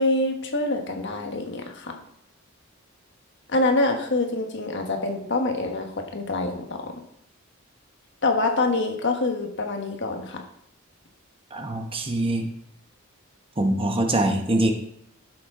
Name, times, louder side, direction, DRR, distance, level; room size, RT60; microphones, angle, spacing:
voice 1, 0.0-1.9 3.5-6.9 8.2-10.4, left 2 dB, 60° left, 3 dB, 1.4 m, -25 dB
voice 2, 11.5-12.5 13.6-14.7, right 1 dB, 25° right, 4 dB, 1.1 m, -23 dB
11.0 x 6.6 x 3.8 m, 0.74 s
head